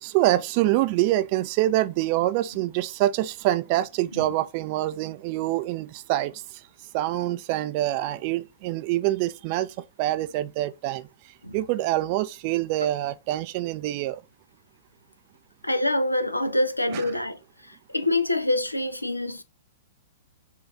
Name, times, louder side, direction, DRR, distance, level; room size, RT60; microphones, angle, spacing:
voice 1, 0.0-6.6 6.9-11.1 11.5-14.2 16.9-17.1, right 15 dB, 40° right, 0.4 m, -25 dB
voice 2, 15.6-17.4 17.9-19.4, left 1 dB, 90° left, 0.5 m, -25 dB
4.5 x 2.4 x 3.4 m
figure-of-eight pair, 105°, 0 cm